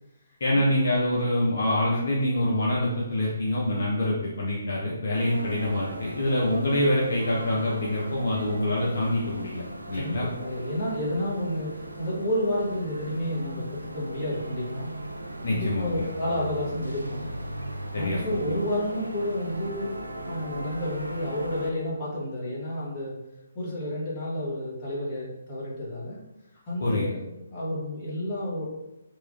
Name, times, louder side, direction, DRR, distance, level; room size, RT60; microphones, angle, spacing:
voice 1, 0.4-10.3 15.4-16.1 17.9-18.5 26.8-27.1, left 1 dB, 55° left, -5 dB, 0.5 m, -26 dB
sound 1, 5.1-21.7, right 1 dB, 85° right, 0.3 m, -38 dB
voice 2, 9.9-14.9 15.5-17.3 17.9-23.1 23.5-26.2 26.6-28.6, left 1 dB, 25° left, -7 dB, 1.1 m, -30 dB
3.0 x 2.2 x 2.5 m, 0.93 s
figure-of-eight pair, 135°, 0 cm